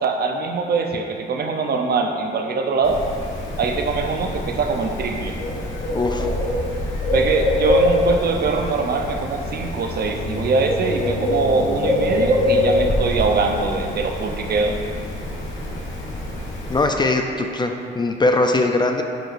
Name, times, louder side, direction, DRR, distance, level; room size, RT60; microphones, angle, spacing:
voice 1, 0.0-3.0 3.6-5.4 7.1-14.8, right 4 dB, 50° right, 3 dB, 0.7 m, -22 dB
Bird, 2.8-16.8, left 1 dB, 75° left, 1.3 m, -24 dB
voice 2, 5.9-6.3 16.7-19.0, left 2 dB, 20° left, 4 dB, 0.4 m, -20 dB
9.0 x 4.9 x 2.6 m, 2.3 s
cardioid pair, 90°, 20 cm